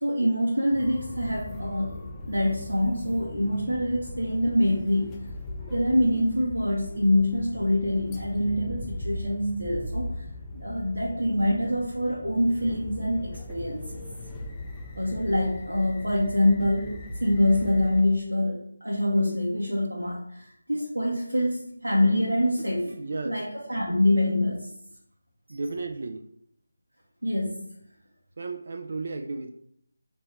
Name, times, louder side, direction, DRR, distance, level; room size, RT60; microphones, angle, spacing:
voice 1, 0.0-5.2 5.7-10.1 10.5-14.0 15.0-16.9 17.2-22.8 23.2-24.7 27.2-27.7, left 1 dB, 90° right, -4 dB, 0.8 m, -25 dB
sound 1, 0.7-18.0, left 1 dB, 15° left, 0.4 m, -38 dB
voice 2, 22.9-23.4 25.5-26.3 28.4-29.5, right 3 dB, 55° right, 6 dB, 0.3 m, -34 dB
3.6 x 3.0 x 3.1 m, 0.70 s
figure-of-eight pair, 160°, 0 cm